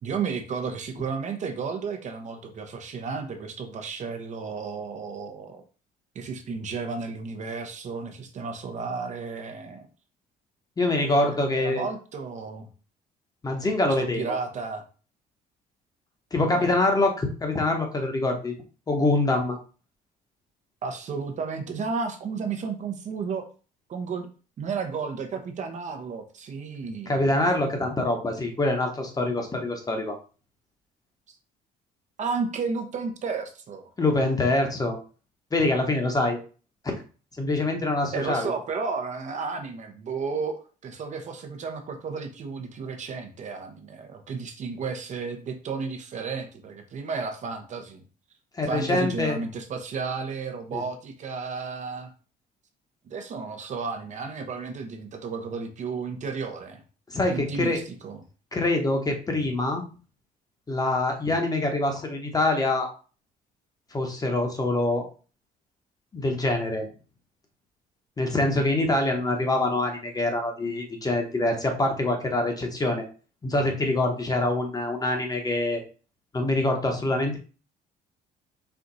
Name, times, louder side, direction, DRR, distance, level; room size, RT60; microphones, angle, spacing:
voice 1, 0.0-5.6 6.1-9.9 10.9-12.7 13.9-14.8 16.6-16.7 20.8-23.5 23.9-24.3 24.6-27.3 31.3-31.4 32.2-33.9 38.1-48.0 48.6-52.1 53.1-56.8 57.3-58.2, right 5 dB, 45° right, 5 dB, 0.8 m, -33 dB
voice 2, 10.8-11.8 13.4-14.4 16.3-18.5 18.9-19.6 27.1-30.2 34.0-35.0 35.5-36.4 36.8-37.0 37.4-38.5 48.6-49.4 50.7-50.8 57.1-57.8 58.5-59.8 60.7-62.9 63.9-65.1 66.1-66.9 68.2-73.0 73.4-75.8 76.3-77.4, left 2 dB, 20° left, 4 dB, 1.0 m, -25 dB
4.5 x 2.5 x 3.9 m, 0.37 s
cardioid pair, 110°, 17 cm